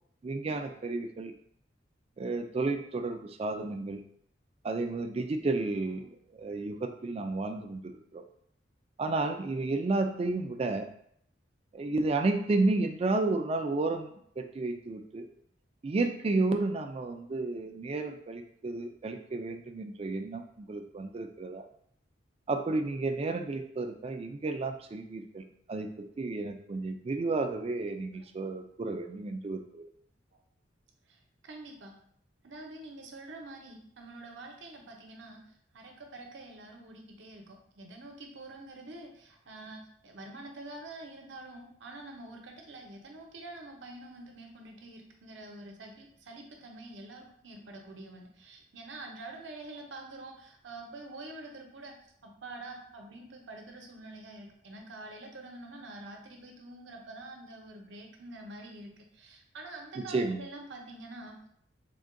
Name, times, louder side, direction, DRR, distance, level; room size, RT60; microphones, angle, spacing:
voice 1, 0.2-1.3 2.2-4.0 4.6-6.0 6.4-8.2 9.0-10.9 11.7-15.3 15.8-21.7 22.5-29.8 60.0-60.4, right 3 dB, 30° right, 6 dB, 0.3 m, -32 dB
voice 2, 31.4-31.9 32.4-35.4 35.7-51.9 52.2-61.4, right 2 dB, 70° right, 2 dB, 0.7 m, -46 dB
3.5 x 2.2 x 3.6 m, 0.67 s
head